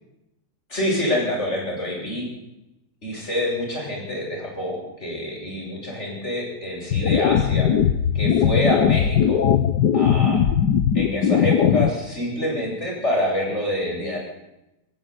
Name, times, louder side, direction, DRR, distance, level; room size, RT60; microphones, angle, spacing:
voice 1, 0.7-2.3 3.0-7.7 8.1-9.4 9.9-10.4 10.9-14.2, left 1 dB, 40° left, -2 dB, 8.4 m, -26 dB
sound 1, 6.9-11.9, left 8 dB, 90° left, 1.7 m, -19 dB
25.0 x 15.0 x 8.7 m, 0.93 s
omnidirectional pair, 1.7 m